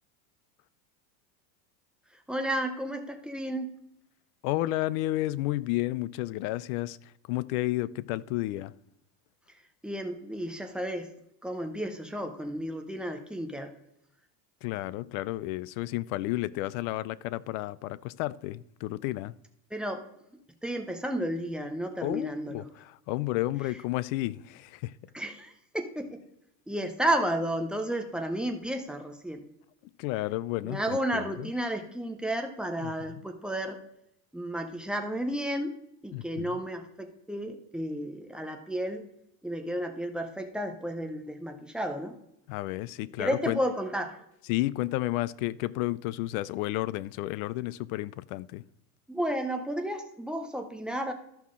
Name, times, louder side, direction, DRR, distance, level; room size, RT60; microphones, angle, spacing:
voice 1, 2.3-3.7 9.5-9.6 9.8-11.1 11.4-13.7 19.7-20.0 20.6-22.7 25.1-26.2 26.7-29.4 30.6-33.8 34.3-35.7 36.0-39.1 39.4-42.2 43.2-44.2 49.1-51.1, right 1 dB, ahead, 0.4 m, -32 dB
voice 2, 4.4-8.7 14.6-19.3 22.0-24.9 30.0-31.5 32.8-33.2 36.1-36.6 42.5-43.6 44.5-48.6, left 17 dB, 65° left, 0.5 m, -32 dB
13.0 x 5.7 x 3.7 m
cardioid pair, 155°, 46 cm